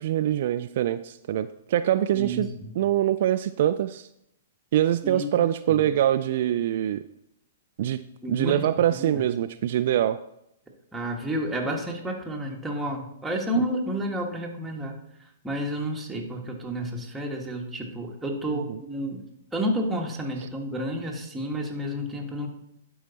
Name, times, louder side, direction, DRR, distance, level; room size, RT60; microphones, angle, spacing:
voice 1, 0.0-2.5 2.8-4.1 4.7-7.0 7.8-8.0 8.3-10.2 18.5-18.8, right 11 dB, 60° right, 11 dB, 0.3 m, -24 dB
voice 2, 2.1-2.7 5.0-5.8 8.2-9.3 10.9-14.9 15.4-19.2 19.5-22.5, equal, 5° right, -1 dB, 1.6 m, -30 dB
11.5 x 4.7 x 4.1 m, 0.79 s
hypercardioid pair, 125°, 0 cm